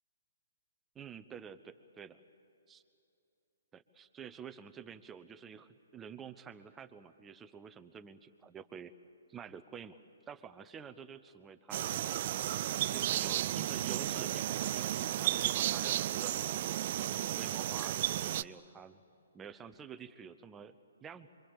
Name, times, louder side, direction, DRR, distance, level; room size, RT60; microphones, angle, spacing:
voice 1, 0.9-2.2 2.7-2.8 3.7-8.9 9.3-10.0 10.3-12.2 12.9-16.3 17.1-19.0 19.3-21.3, right 7 dB, 15° right, 11 dB, 0.9 m, -49 dB
sound 1, 11.7-18.4, right 12 dB, 40° right, 0.5 m, -33 dB
26.5 x 24.0 x 7.2 m, 2.8 s
figure-of-eight pair, 130°, 0 cm